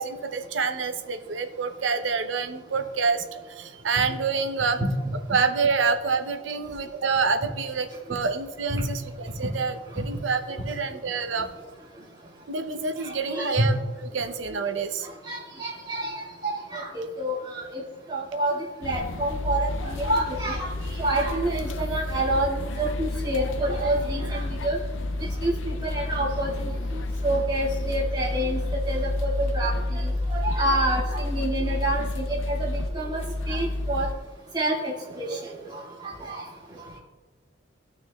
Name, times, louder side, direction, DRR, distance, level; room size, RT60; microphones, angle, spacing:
voice 1, 0.0-4.8 5.3-11.5 12.5-13.8 14.1-15.1, right 5 dB, 75° right, 7 dB, 0.7 m, -27 dB
voice 2, 13.0-13.7 15.2-17.8 18.1-18.5 18.8-24.8 25.4-28.6 28.9-34.1 34.5-35.4 35.7-36.4, right 1 dB, 25° right, -7 dB, 2.2 m, -28 dB
sound 1, 18.8-34.1, left 2 dB, 85° left, 0.5 m, -30 dB
16.0 x 6.2 x 2.3 m, 1.3 s
head